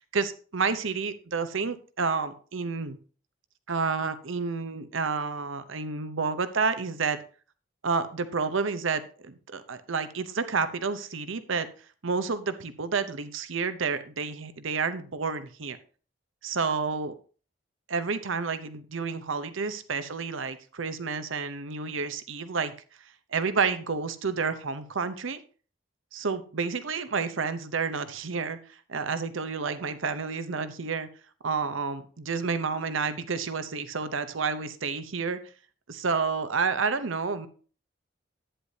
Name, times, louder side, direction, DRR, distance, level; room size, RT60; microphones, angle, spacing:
voice 1, 0.1-3.0 3.7-7.2 7.8-11.7 12.0-15.8 16.4-17.1 17.9-22.7 23.3-25.4 26.1-31.1 31.4-35.4 35.9-37.5, right 5 dB, 85° right, 12 dB, 0.8 m, -30 dB
11.0 x 9.6 x 2.8 m, 0.40 s
head